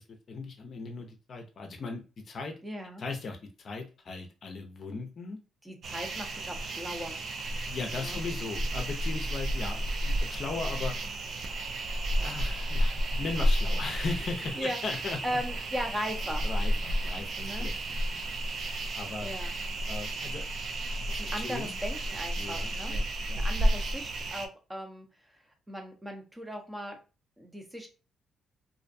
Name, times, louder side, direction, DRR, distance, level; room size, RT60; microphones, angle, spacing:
voice 1, 0.0-2.5 3.0-5.4 7.7-10.9 12.2-15.2 16.4-18.2 19.0-19.3 19.9-20.4 21.1-21.7 22.4-23.5, left 3 dB, 50° left, 4 dB, 0.5 m, -38 dB
voice 2, 2.6-3.0 5.6-7.2 7.9-8.2 14.5-14.8 15.2-16.4 17.4-17.7 19.2-19.6 21.2-22.9 23.3-25.1 25.7-27.0 27.4-27.9, equal, 10° right, 3 dB, 0.7 m, -37 dB
sound 1, 5.8-24.5, right 1 dB, 55° right, 0.4 m, -32 dB
2.5 x 2.2 x 2.6 m, 0.32 s
cardioid pair, 90°, 0 cm